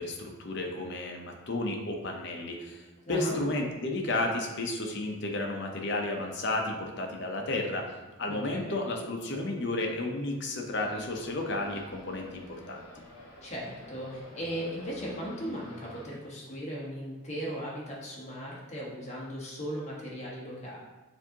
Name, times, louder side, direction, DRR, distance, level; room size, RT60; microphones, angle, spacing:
voice 1, 0.0-2.8 3.1-7.9 8.2-12.9, left 2 dB, 55° left, 2 dB, 0.6 m, -32 dB
voice 2, 3.0-3.4 8.3-8.8 13.4-20.8, equal, 30° left, -6 dB, 1.2 m, -37 dB
sound 1, 10.7-16.0, equal, 70° left, 1.1 m, -49 dB
6.9 x 2.6 x 2.8 m, 1.1 s
head